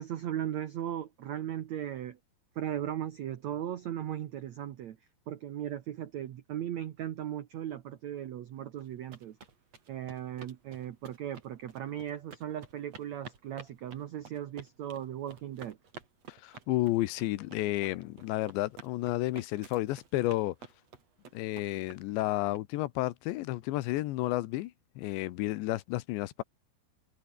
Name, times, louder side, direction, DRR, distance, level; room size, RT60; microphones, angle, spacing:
voice 1, 0.0-2.2 2.5-5.0 5.3-9.4 9.9-15.8, right 11 dB, 75° right, 1.6 m, -37 dB
sound 1, 8.8-22.6, right 5 dB, 40° right, 4.3 m, -51 dB
voice 2, 16.3-20.6 21.3-26.4, left 17 dB, 85° left, 3.3 m, -31 dB
omnidirectional pair, 5.0 m